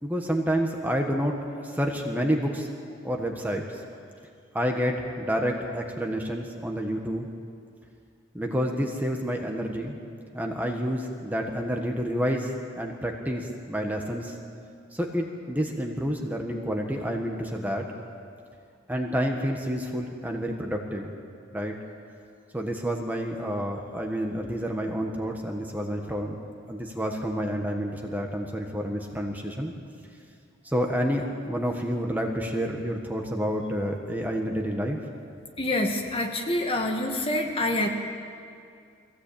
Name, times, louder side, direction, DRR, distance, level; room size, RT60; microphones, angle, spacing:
voice 1, 0.0-1.4 1.6-2.7 3.0-3.8 4.5-7.3 8.3-10.0 10.3-14.3 14.9-17.9 18.9-21.1 21.5-21.7 22.5-26.4 26.7-29.7 30.6-35.0, equal, 10° right, 2 dB, 1.4 m, -29 dB
voice 2, 35.6-37.9, left 1 dB, 30° left, 2 dB, 1.7 m, -26 dB
22.0 x 16.5 x 8.6 m, 2.4 s
head